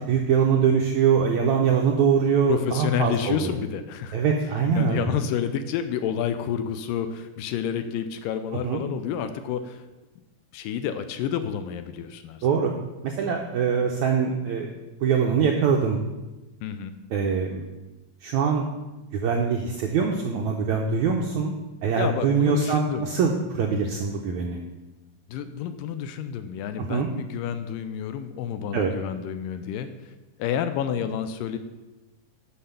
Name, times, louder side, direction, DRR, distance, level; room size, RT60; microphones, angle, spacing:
voice 1, 0.1-3.5 4.1-5.0 8.6-8.8 12.4-12.7 13.0-14.7 15.0-16.0 17.1-17.6 18.2-18.7 19.1-21.5 21.8-24.6 26.8-27.1 28.7-28.9, right 6 dB, 85° right, 2 dB, 1.7 m, -23 dB
voice 2, 2.5-4.2 4.7-9.8 10.5-12.5 16.6-16.9 22.0-23.1 25.3-30.1 30.4-31.6, left 8 dB, 80° left, 10 dB, 2.1 m, -29 dB
7.6 x 6.5 x 6.7 m, 1.1 s
omnidirectional pair, 4.2 m